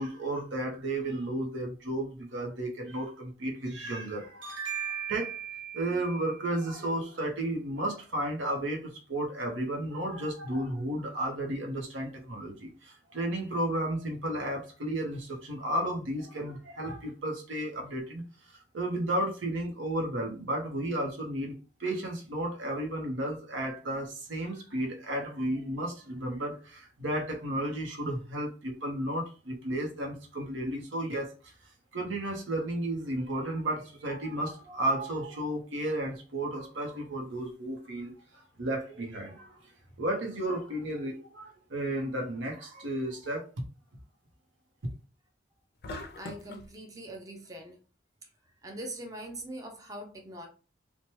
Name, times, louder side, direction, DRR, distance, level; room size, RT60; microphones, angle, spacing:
voice 1, 0.0-21.5 21.8-31.5 31.9-39.6 40.0-43.4 44.8-44.9, right 1 dB, 85° right, 0.8 m, -33 dB
sound 1, 45.8-46.7, left 2 dB, 55° left, 0.4 m, -41 dB
voice 2, 46.2-47.8 48.6-50.5, right 1 dB, 20° right, 0.5 m, -42 dB
2.9 x 2.2 x 2.9 m
head